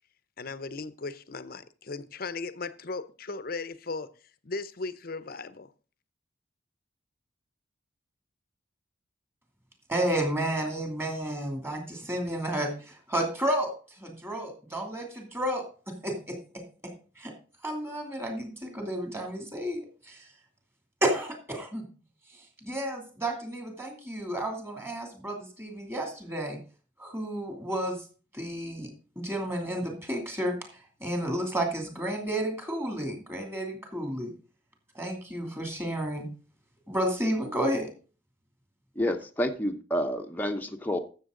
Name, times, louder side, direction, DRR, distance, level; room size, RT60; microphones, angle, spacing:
voice 1, 0.4-4.1 4.4-5.7, left 3 dB, 50° left, 0.7 m, -37 dB
voice 2, 9.9-17.3 17.6-20.4 21.0-21.9 22.3-26.6 27.0-28.1 28.3-34.3 34.9-36.3 36.9-37.9, right 1 dB, 15° right, 2.7 m, -32 dB
voice 3, 39.0-41.0, equal, 10° left, 0.8 m, -29 dB
13.5 x 7.3 x 3.8 m
head